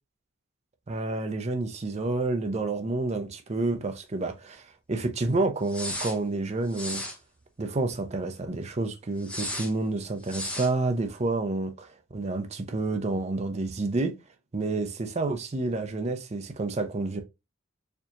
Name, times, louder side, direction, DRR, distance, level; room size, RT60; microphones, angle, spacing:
voice 1, 0.9-7.0 7.6-14.1 14.5-17.2, right 2 dB, 35° right, 0.5 m, -29 dB
sound 1, 5.7-6.2 6.7-7.2 9.2-9.7 10.2-10.7, left 1 dB, 5° left, 0.9 m, -34 dB
4.4 x 2.8 x 2.5 m
head